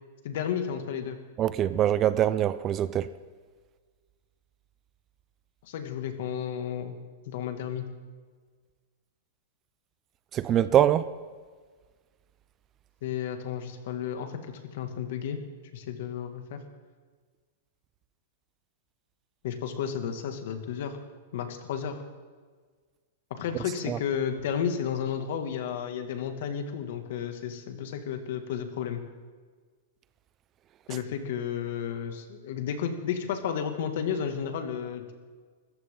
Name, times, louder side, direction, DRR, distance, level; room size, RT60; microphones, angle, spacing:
voice 1, 0.2-1.2 5.6-6.9 7.3-7.9 13.0-15.4 15.7-16.6 19.4-21.0 21.3-22.0 23.4-29.0 30.9-35.1, left 8 dB, 60° left, 2.1 m, -32 dB
voice 2, 1.4-3.1 10.3-11.1 23.9-24.0, right 11 dB, 25° right, 0.4 m, -24 dB
25.5 x 14.5 x 3.8 m
supercardioid pair, 160°, 0 cm